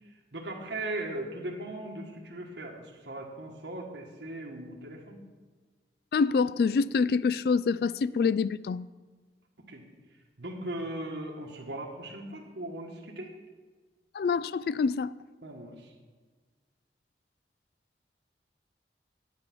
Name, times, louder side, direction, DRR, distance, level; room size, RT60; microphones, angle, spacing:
voice 1, 0.3-5.2 9.7-9.8 10.4-13.3 15.4-15.9, right 1 dB, 85° right, 1.7 m, -38 dB
voice 2, 6.1-8.9 14.1-15.1, left 5 dB, 60° left, 0.3 m, -26 dB
10.5 x 9.7 x 6.1 m
head